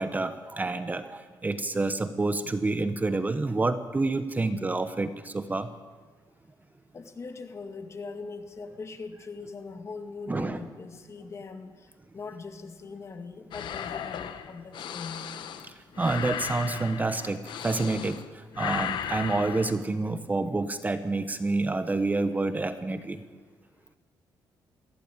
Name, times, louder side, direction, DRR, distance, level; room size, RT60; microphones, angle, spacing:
voice 1, 0.0-5.7 10.3-10.6 16.0-17.4 17.6-18.2 18.6-23.2, right 3 dB, 20° right, 10 dB, 1.1 m, -28 dB
voice 2, 6.9-11.9 12.1-15.3, left 4 dB, 35° left, 7 dB, 2.1 m, -41 dB
sound 1, 13.5-18.3 18.5-19.7, left 9 dB, 70° left, 1.4 m, -36 dB
22.5 x 15.5 x 8.9 m, 1.4 s
cardioid pair, 110°, 8 cm